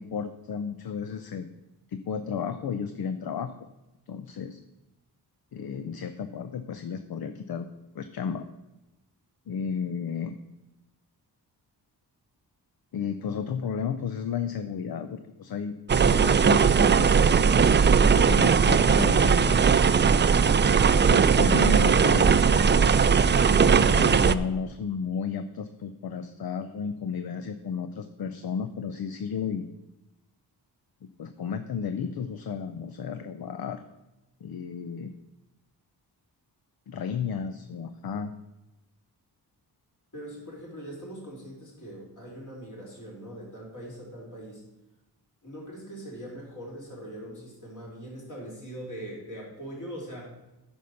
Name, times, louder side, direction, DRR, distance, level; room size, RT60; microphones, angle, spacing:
voice 1, 0.0-1.6 1.9-3.7 4.1-4.6 5.5-7.7 7.9-8.5 9.5-10.4 12.9-15.7 16.0-17.2 17.8-20.0 21.1-22.4 23.4-29.7 31.0-33.8 34.4-35.1 36.9-38.3, left 6 dB, 60° left, 9 dB, 0.7 m, -33 dB
sound 1, 15.9-24.4, right 6 dB, 30° right, 0.4 m, -19 dB
voice 2, 40.1-44.6 45.4-50.3, right 1 dB, 45° left, -3 dB, 4.1 m, -41 dB
10.0 x 5.5 x 6.5 m, 1.0 s
cardioid pair, 85°, 41 cm